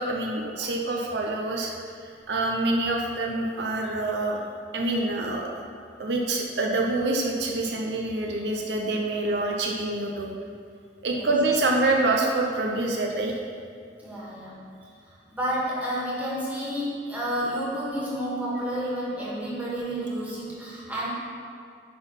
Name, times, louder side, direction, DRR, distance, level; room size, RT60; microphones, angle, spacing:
voice 1, 0.0-1.7 2.3-4.4 4.7-5.5 6.0-10.3 11.0-13.4, right 2 dB, 75° right, 0 dB, 0.7 m, -26 dB
voice 2, 14.0-14.6 15.3-21.1, equal, 10° right, -8 dB, 1.9 m, -30 dB
8.4 x 3.9 x 5.7 m, 2.2 s
head